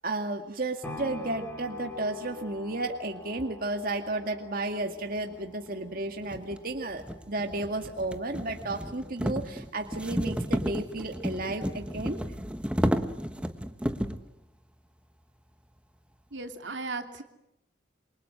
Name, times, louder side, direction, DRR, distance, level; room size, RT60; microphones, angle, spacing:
voice 1, 0.0-12.2, right 2 dB, 50° right, 4 dB, 2.1 m, -33 dB
sound 1, 0.8-8.9 9.4-9.5, left 1 dB, 10° left, 5.0 m, -46 dB
sound 2, 5.4-5.5 6.2-14.3, equal, 5° right, 1.3 m, -32 dB
voice 2, 16.3-17.2, right 3 dB, 80° right, 5 dB, 2.7 m, -36 dB
28.0 x 24.0 x 7.9 m, 0.86 s
head